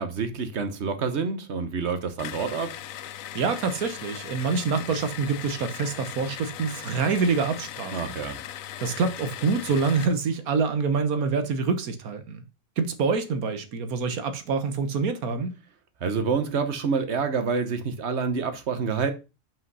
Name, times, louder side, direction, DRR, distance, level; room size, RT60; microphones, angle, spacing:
voice 1, 0.0-2.7 7.9-8.4 16.0-19.1, right 5 dB, 55° right, 1.2 m, -27 dB
sound 1, 2.2-10.2, left 11 dB, 75° left, 1.0 m, -39 dB
voice 2, 3.3-8.1 8.8-12.4 12.8-15.6, right 5 dB, 90° right, 1.5 m, -26 dB
5.6 x 5.6 x 5.4 m
omnidirectional pair, 1.5 m